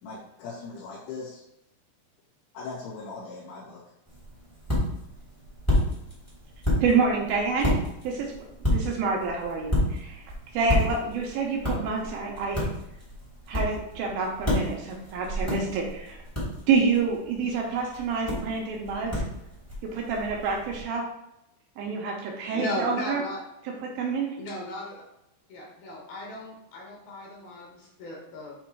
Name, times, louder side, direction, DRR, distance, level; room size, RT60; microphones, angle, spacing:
voice 1, 0.0-1.4 2.5-3.8, left 4 dB, 85° left, -8 dB, 4.4 m, -39 dB
sound 1, 4.0-20.8, left 1 dB, 10° left, 0.6 m, -31 dB
voice 2, 6.8-7.7 8.0-8.3 8.7-10.2 10.5-12.7 13.5-16.2 16.7-19.2 19.9-21.0 21.8-23.2 24.0-24.3, right 4 dB, 75° right, 0 dB, 2.2 m, -27 dB
voice 3, 22.5-23.4 24.4-25.0 25.5-28.5, left 1 dB, 65° left, -2 dB, 2.8 m, -36 dB
8.5 x 3.1 x 4.5 m, 0.86 s
omnidirectional pair, 5.1 m